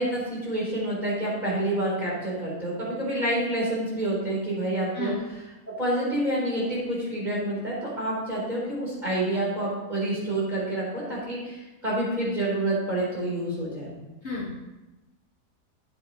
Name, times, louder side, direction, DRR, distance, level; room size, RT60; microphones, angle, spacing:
voice 1, 0.0-5.1 5.8-13.9, right 1 dB, 25° right, -6 dB, 4.1 m, -28 dB
voice 2, 14.2-14.6, left 2 dB, 40° left, -6 dB, 1.8 m, -32 dB
12.5 x 7.8 x 3.1 m, 1.1 s
omnidirectional pair, 1.8 m